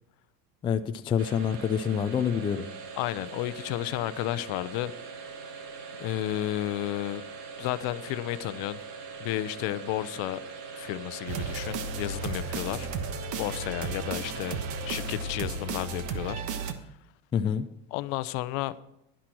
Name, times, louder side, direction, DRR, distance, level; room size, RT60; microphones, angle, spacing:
voice 1, 0.6-2.6 17.3-17.7, left 8 dB, 15° left, 8 dB, 0.3 m, -27 dB
sound 1, 1.2-15.5, right 5 dB, 80° right, 2.3 m, -42 dB
voice 2, 3.0-4.9 6.0-7.2 7.6-8.8 9.2-10.4 10.7-12.9 13.4-16.4 17.9-18.7, left 15 dB, 60° left, 15 dB, 0.7 m, -32 dB
sound 2, 11.3-16.7, right 4 dB, 55° right, 1.3 m, -34 dB
11.5 x 10.0 x 4.5 m, 0.82 s
cardioid pair, 150°, 35 cm